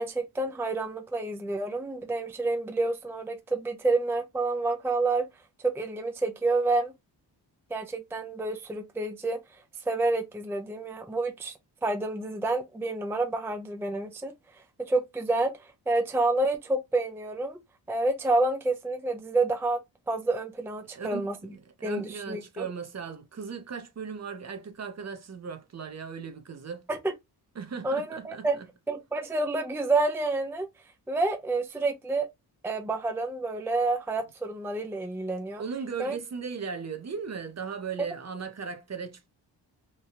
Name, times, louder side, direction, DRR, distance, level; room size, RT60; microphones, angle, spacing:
voice 1, 0.0-5.3 5.6-6.9 7.7-14.3 14.8-17.6 17.9-19.8 20.1-21.4 21.8-22.7 26.9-27.1 27.8-28.6 28.9-30.7 31.1-32.3 32.6-35.6 36.0-36.2, right 2 dB, 5° right, 0.5 m, -29 dB
voice 2, 20.9-26.9 27.6-28.7 35.6-39.3, right 6 dB, 40° right, 0.7 m, -37 dB
3.0 x 2.2 x 2.7 m
cardioid pair, 65°, 42 cm